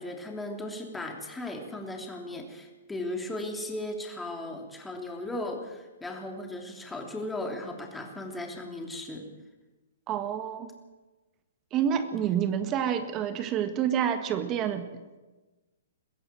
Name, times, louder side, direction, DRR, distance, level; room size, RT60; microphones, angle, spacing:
voice 1, 0.0-9.3, left 1 dB, 5° left, 2 dB, 3.2 m, -36 dB
voice 2, 10.1-10.7 11.7-14.8, right 9 dB, 25° right, 9 dB, 1.5 m, -28 dB
22.0 x 15.5 x 7.7 m, 1.2 s
hypercardioid pair, 140°, 0 cm